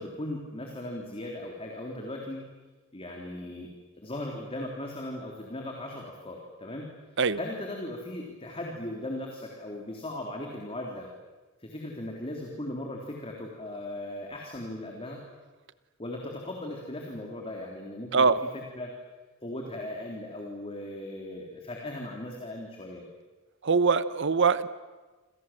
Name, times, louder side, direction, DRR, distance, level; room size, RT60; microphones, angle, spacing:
voice 1, 0.0-2.4 2.9-3.7 4.0-6.9 7.4-11.1 11.6-15.2 16.0-18.3 18.7-18.9 19.4-23.1, left 1 dB, 30° left, 0 dB, 3.6 m, -38 dB
voice 2, 23.6-24.7, right 5 dB, 60° right, 15 dB, 0.9 m, -23 dB
28.5 x 27.5 x 7.6 m, 1.3 s
head